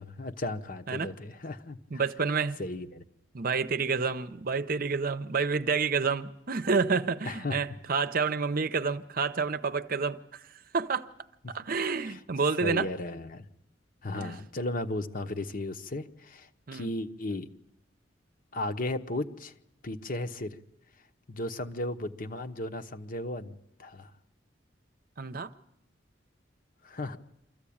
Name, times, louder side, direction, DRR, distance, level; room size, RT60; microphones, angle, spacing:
voice 1, 0.0-2.0 2.6-3.0 7.3-7.6 12.6-13.5 14.0-17.5 18.5-19.5 19.8-20.6 21.3-24.1 26.8-27.2, left 2 dB, 50° left, 1.0 m, -35 dB
voice 2, 1.9-2.6 3.3-11.1 11.5-12.9 14.1-14.4 16.7-16.9 25.2-25.5, right 5 dB, 50° right, 0.8 m, -29 dB
25.5 x 14.5 x 8.6 m
head